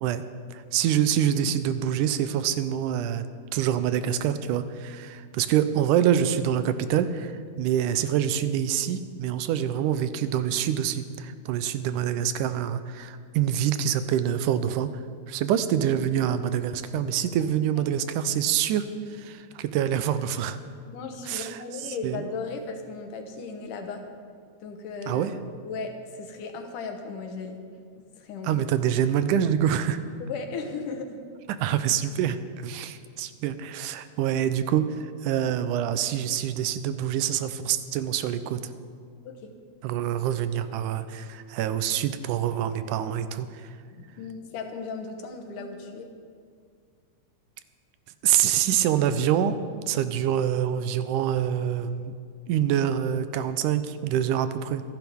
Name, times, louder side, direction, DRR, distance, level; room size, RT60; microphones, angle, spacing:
voice 1, 0.5-3.3 3.5-14.9 15.3-20.6 21.3-21.6 22.0-22.2 25.1-25.3 28.4-30.0 31.6-35.0 35.2-38.6 39.8-43.5 48.2-49.6 49.9-52.1 52.5-54.8, right 10 dB, 80° right, 11 dB, 2.2 m, -26 dB
voice 2, 20.9-24.0 24.6-25.3 25.7-27.6 28.2-28.7 30.2-31.2 39.2-39.5 43.9-46.1, left 4 dB, 85° left, 5 dB, 2.8 m, -36 dB
25.5 x 10.5 x 3.6 m, 2.1 s
omnidirectional pair, 3.6 m